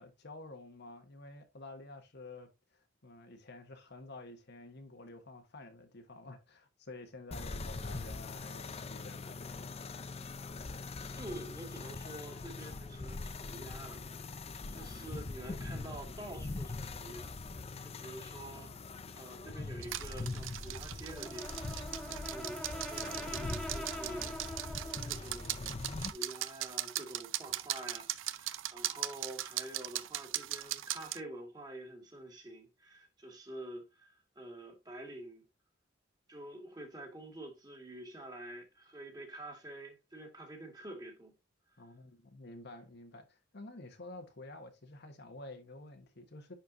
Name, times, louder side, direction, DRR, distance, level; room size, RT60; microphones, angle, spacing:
voice 1, 0.0-9.7 41.8-46.5, left 2 dB, 60° left, 1.4 m, -50 dB
sound 1, 7.3-26.1, left 3 dB, 30° left, 0.5 m, -42 dB
voice 2, 11.1-14.0 14.7-17.5 17.8-18.7 19.1-21.7 22.3-24.4 25.1-25.5 26.0-35.4 36.3-41.3, right 1 dB, 20° right, 2.3 m, -47 dB
sound 2, 19.8-31.2, right 14 dB, 85° right, 0.5 m, -39 dB
Brass instrument, 21.1-25.2, left 1 dB, 5° left, 1.1 m, -44 dB
10.5 x 4.5 x 2.7 m
head